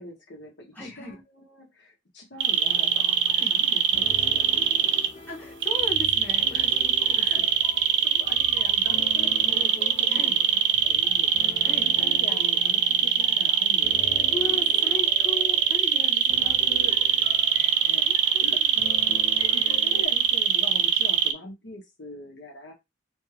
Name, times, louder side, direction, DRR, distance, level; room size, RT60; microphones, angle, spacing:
voice 1, 0.0-3.2 3.5-5.1 6.5-6.7 7.0-7.4 8.0-14.3 14.7-15.1 15.9-18.1 18.4-18.6 19.4-22.7, equal, 65° left, 1.2 m, -43 dB
voice 2, 0.7-1.2 3.3-3.5 5.3-7.5 10.1-10.4 11.6-11.8 14.3-16.6 17.9-19.2, left 2 dB, 10° left, 1.2 m, -38 dB
sound 1, 2.4-5.1 5.6-21.3, right 8 dB, 70° right, 0.5 m, -22 dB
sound 2, 2.6-20.1, left 2 dB, 30° left, 0.5 m, -43 dB
4.4 x 2.3 x 3.2 m
head